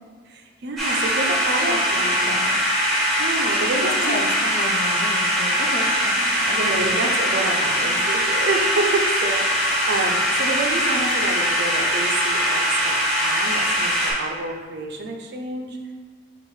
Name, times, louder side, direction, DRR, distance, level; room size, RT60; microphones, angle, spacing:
voice 1, 0.3-2.3 2.8-4.2 6.5-15.9, right 2 dB, 55° right, 3 dB, 0.5 m, -28 dB
sound 1, 0.8-14.1, equal, ahead, 1.0 m, -21 dB
voice 2, 1.6-2.6 3.8-7.0 7.8-7.9, left 2 dB, 45° left, 2 dB, 0.5 m, -33 dB
4.5 x 2.4 x 4.7 m, 1.5 s
head